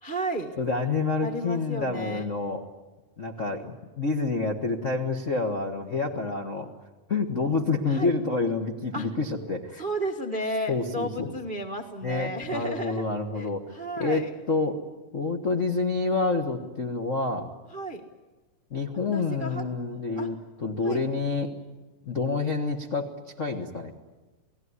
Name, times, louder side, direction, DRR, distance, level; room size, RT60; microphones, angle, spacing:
voice 1, 0.0-0.5 1.2-2.3 7.9-8.1 8.9-9.1 9.8-13.0 13.3-14.3 17.7-18.0 19.1-19.6 20.2-20.3 20.8-21.0, right 1 dB, 70° right, 4 dB, 0.4 m, -33 dB
voice 2, 0.6-2.6 3.2-6.7 7.1-9.8 10.7-11.3 12.0-14.8 15.1-17.5 18.7-21.5 22.0-23.1 23.4-23.9, left 3 dB, 80° left, 4 dB, 0.6 m, -28 dB
29.0 x 19.0 x 9.7 m, 1.2 s
omnidirectional pair, 3.9 m